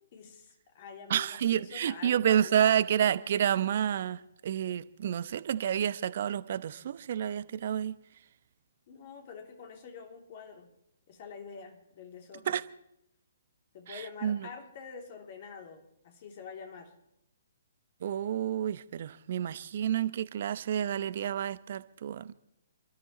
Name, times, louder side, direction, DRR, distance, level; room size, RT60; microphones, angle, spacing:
voice 1, 0.1-2.8 8.9-10.7 11.1-12.6 13.7-16.9, left 6 dB, 45° left, 3.1 m, -47 dB
voice 2, 1.1-7.9 12.5-12.6 13.9-14.5 18.0-22.3, right 10 dB, 50° right, 0.8 m, -29 dB
29.5 x 13.0 x 3.2 m
figure-of-eight pair, 130°, 0 cm